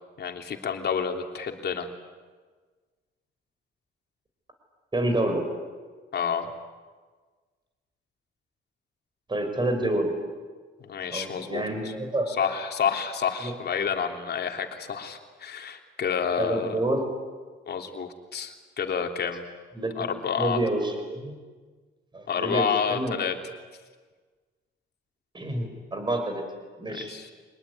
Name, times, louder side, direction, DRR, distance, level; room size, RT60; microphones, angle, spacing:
voice 1, 0.2-1.9 6.1-6.5 10.8-11.6 12.3-16.8 17.7-19.4 19.9-20.6 22.3-23.3 26.9-27.3, left 7 dB, 55° left, 4 dB, 3.2 m, -29 dB
voice 2, 4.9-5.4 9.3-10.1 11.1-12.4 13.4-13.5 16.4-17.0 19.8-21.4 22.1-23.2 25.3-26.4 26.8-27.1, right 1 dB, 25° right, 6 dB, 5.9 m, -28 dB
26.0 x 20.0 x 9.9 m, 1.4 s
cardioid pair, 90°, 20 cm